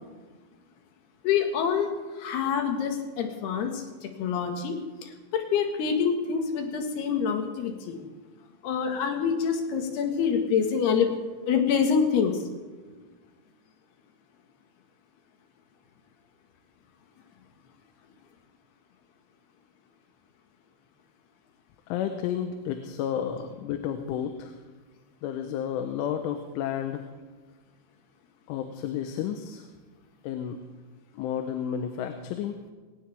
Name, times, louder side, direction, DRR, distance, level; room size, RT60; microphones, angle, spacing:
voice 1, 1.2-1.9 2.2-8.0 8.6-11.1 11.5-12.3, left 7 dB, 65° left, 4 dB, 3.5 m, -26 dB
voice 2, 21.9-24.5 25.2-27.0 28.5-29.6 30.2-30.6 31.2-32.6, left 9 dB, 90° left, 6 dB, 3.4 m, -31 dB
20.5 x 18.0 x 3.5 m, 1.4 s
omnidirectional pair, 5.4 m